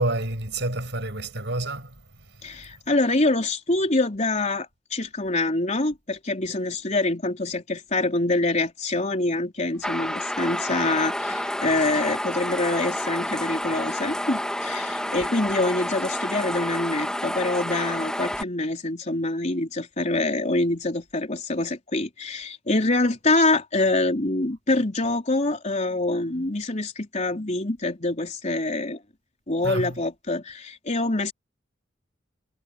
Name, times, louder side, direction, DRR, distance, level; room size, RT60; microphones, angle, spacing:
voice 1, 0.0-1.9 29.6-30.0, right 2 dB, 65° right, 6.8 m, -28 dB
voice 2, 2.4-29.0 29.5-31.3, left 2 dB, 40° left, 3.8 m, -25 dB
sound 1, 9.8-18.4, left 1 dB, 5° left, 1.4 m, -29 dB
head